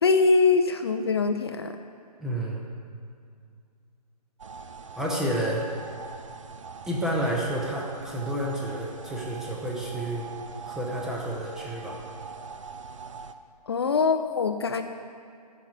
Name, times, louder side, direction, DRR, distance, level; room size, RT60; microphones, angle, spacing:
voice 1, 0.0-1.8 13.7-14.8, left 4 dB, 40° left, 7 dB, 0.5 m, -23 dB
voice 2, 2.2-2.6 5.0-5.6 6.9-10.3 10.7-12.0, right 1 dB, ahead, -3 dB, 0.6 m, -30 dB
sound 1, 4.4-13.3, right 5 dB, 50° right, 0.6 m, -42 dB
12.5 x 4.8 x 7.4 m, 2.3 s
figure-of-eight pair, 135°, 21 cm